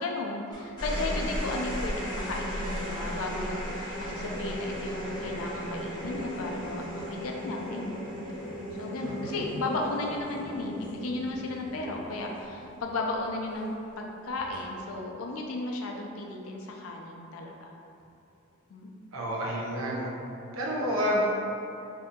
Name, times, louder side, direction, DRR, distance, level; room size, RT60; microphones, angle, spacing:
voice 1, 0.0-8.1 8.8-17.7 18.7-18.9, left 2 dB, 85° left, 1 dB, 0.4 m, -34 dB
sound 1, 0.5-13.1 14.4-14.8, equal, 20° left, 1.0 m, -36 dB
voice 2, 9.0-9.4 19.1-20.1 20.5-21.3, equal, 75° right, -3 dB, 0.6 m, -29 dB
2.8 x 2.6 x 3.5 m, 2.7 s
head